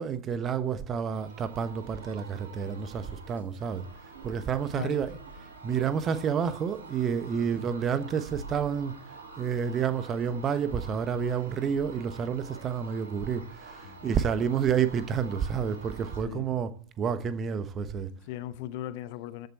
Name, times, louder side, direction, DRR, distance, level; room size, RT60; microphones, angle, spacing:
voice 1, 0.0-3.8 4.2-5.2 5.6-9.0 9.4-18.1, right 7 dB, 25° right, 1.2 m, -29 dB
sound 1, 1.1-16.2, right 3 dB, 65° right, 3.2 m, -47 dB
voice 2, 4.7-5.1 7.3-7.5 13.8-14.1 16.2-16.5 18.2-19.5, left 13 dB, 50° left, 0.8 m, -38 dB
14.0 x 8.0 x 4.3 m
figure-of-eight pair, 90°, 0 cm